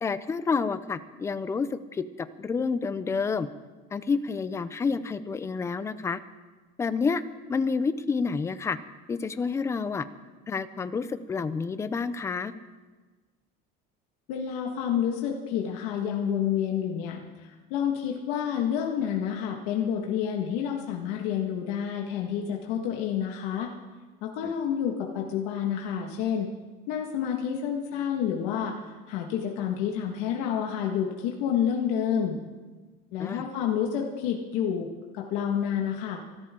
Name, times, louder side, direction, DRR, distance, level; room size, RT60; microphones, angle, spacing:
voice 1, 0.0-3.5 3.9-6.2 6.8-7.2 7.5-8.8 9.1-10.0 10.5-12.5 24.4-24.5 33.2-33.4, left 5 dB, 15° left, 13 dB, 0.4 m, -29 dB
voice 2, 14.3-23.7 24.2-26.5 26.9-28.8 29.1-32.4 33.1-34.9 35.1-36.2, left 8 dB, 80° left, 0 dB, 1.7 m, -29 dB
25.5 x 13.0 x 3.8 m, 1.3 s
cardioid pair, 180°, 21 cm